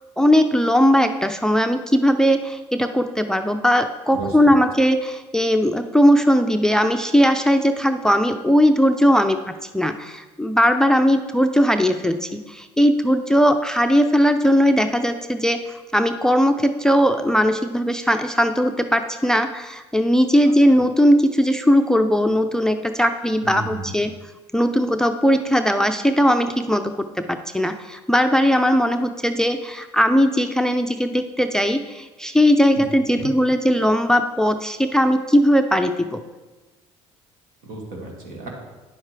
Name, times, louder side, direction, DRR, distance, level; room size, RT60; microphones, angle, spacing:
voice 1, 0.2-24.1 24.5-36.2, equal, 5° left, 8 dB, 0.5 m, -19 dB
voice 2, 23.4-23.9 32.7-32.8 33.1-33.3 37.6-38.5, right 3 dB, 70° right, -1 dB, 2.1 m, -33 dB
9.9 x 7.1 x 3.3 m, 1.2 s
hypercardioid pair, 60°, 15 cm